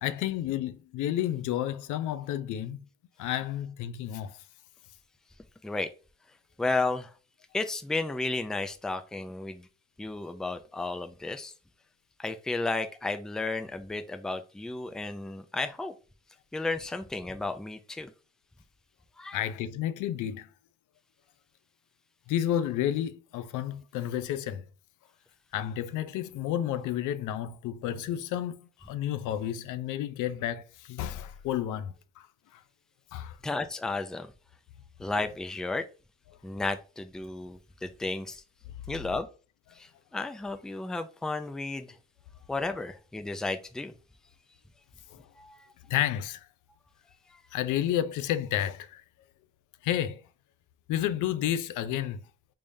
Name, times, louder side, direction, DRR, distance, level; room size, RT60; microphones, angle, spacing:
voice 1, 0.0-2.8 3.2-4.4 19.3-20.5 22.3-24.6 25.5-32.3 32.5-32.6 33.1-33.4 45.1-45.2 45.9-46.5 47.5-49.0 49.8-50.2 50.9-52.2, left 11 dB, 85° left, 0.5 m, -31 dB
voice 2, 6.6-7.1 7.5-9.7 10.0-11.5 12.2-15.9 16.5-18.1 19.2-19.4 33.4-34.3 35.0-35.8 36.4-38.4 38.9-39.3 39.7-42.0 42.5-43.9 45.4-45.7 47.3-47.4, left 3 dB, ahead, 0.3 m, -33 dB
3.4 x 3.4 x 2.6 m
cardioid pair, 90°, 30 cm